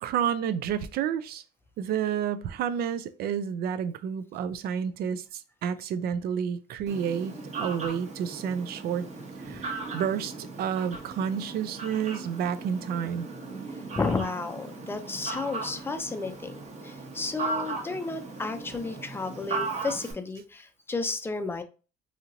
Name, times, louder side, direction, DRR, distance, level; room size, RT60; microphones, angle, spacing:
voice 1, 0.0-1.4 1.8-7.3 7.6-9.1 9.5-13.3, right 8 dB, 65° right, 0.4 m, -30 dB
Fowl, 6.9-20.1, right 3 dB, 40° right, 1.0 m, -37 dB
voice 2, 14.0-21.6, left 3 dB, 15° left, 0.4 m, -32 dB
3.0 x 2.8 x 2.5 m
cardioid pair, 110°, 17 cm